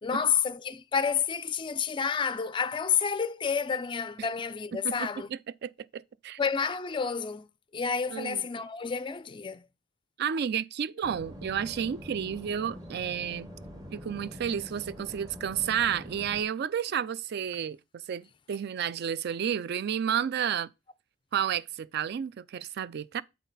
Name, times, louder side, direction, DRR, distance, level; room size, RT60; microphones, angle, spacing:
voice 1, 0.0-5.3 6.4-7.5 7.7-9.7, left 6 dB, 25° left, 0.4 m, -29 dB
voice 2, 4.8-6.4 8.1-8.4 10.2-13.5 13.9-17.8 18.1-20.7 21.3-23.2, right 8 dB, 50° right, 0.3 m, -31 dB
sound 1, 11.0-16.4, equal, 20° right, 1.2 m, -45 dB
8.1 x 4.1 x 4.0 m
head